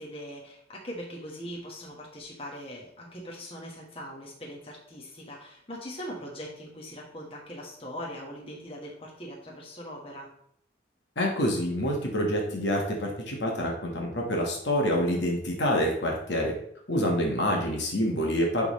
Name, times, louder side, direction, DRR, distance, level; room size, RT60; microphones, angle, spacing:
voice 1, 0.0-10.3, equal, 30° left, -3 dB, 1.4 m, -41 dB
voice 2, 11.2-16.5 16.9-18.7, equal, 70° left, 0 dB, 1.4 m, -27 dB
10.5 x 3.6 x 3.1 m, 0.69 s
head